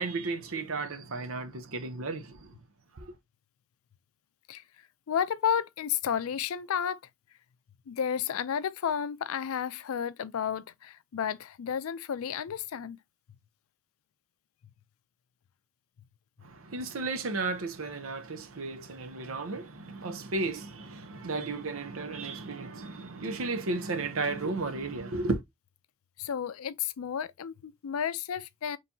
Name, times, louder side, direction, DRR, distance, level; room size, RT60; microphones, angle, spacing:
voice 1, 0.0-2.5 3.0-3.1 16.4-25.4, right 3 dB, 75° right, 0.8 m, -34 dB
voice 2, 5.1-7.0 7.9-13.0 26.2-28.8, left 8 dB, 80° left, 0.4 m, -32 dB
4.4 x 3.2 x 2.7 m
head